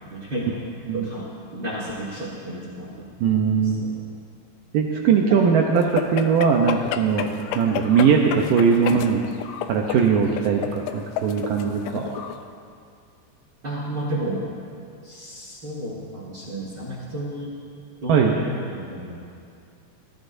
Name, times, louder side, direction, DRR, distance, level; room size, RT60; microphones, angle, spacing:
voice 1, 0.1-0.6 0.9-3.1 3.8-4.0 13.6-14.5 15.0-17.5 18.0-19.2, right 1 dB, 50° right, -6 dB, 1.3 m, -32 dB
voice 2, 3.2-3.8 4.7-9.2 9.7-10.6 10.9-12.2 18.1-18.4, right 6 dB, 85° right, 1 dB, 1.9 m, -20 dB
sound 1, 5.8-12.4, left 10 dB, 90° left, 2.8 m, -31 dB
20.5 x 14.0 x 2.6 m, 2.3 s
omnidirectional pair, 4.9 m